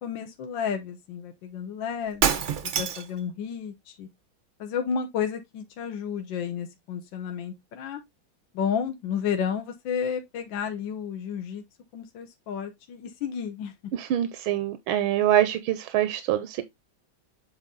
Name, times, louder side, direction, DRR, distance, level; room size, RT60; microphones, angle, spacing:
voice 1, 0.0-4.1 4.6-8.0 8.5-11.6 11.9-13.7, left 7 dB, 70° left, 1.6 m, -32 dB
Shatter, 2.1-3.2, right 8 dB, 65° right, 0.7 m, -25 dB
voice 2, 13.9-16.6, right 12 dB, 80° right, 1.5 m, -25 dB
8.2 x 3.7 x 3.7 m
omnidirectional pair, 2.2 m